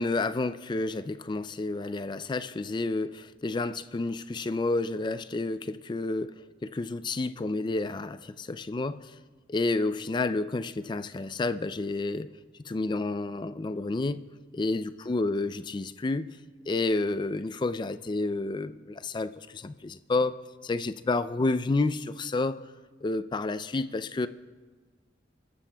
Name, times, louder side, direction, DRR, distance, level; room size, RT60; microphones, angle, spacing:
voice 1, 0.0-6.3 6.6-9.1 9.5-12.3 12.6-14.2 14.5-16.4 16.7-20.4 20.6-22.6 23.0-24.3, left 3 dB, 25° left, 13 dB, 0.3 m, -30 dB
28.0 x 13.0 x 2.3 m, 1.4 s
head